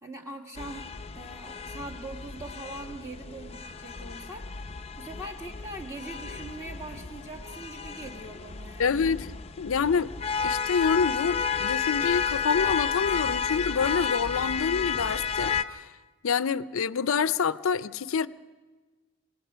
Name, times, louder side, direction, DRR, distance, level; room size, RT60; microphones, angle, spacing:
voice 1, 0.0-0.9 1.1-4.7 4.9-9.2, right 2 dB, 15° right, 1.6 m, -42 dB
sound 1, 0.6-15.6, left 6 dB, 30° left, 0.5 m, -32 dB
voice 2, 8.8-9.3 9.6-10.1 10.4-15.9 16.2-18.3, left 6 dB, 85° left, 0.5 m, -27 dB
26.0 x 17.5 x 5.7 m
head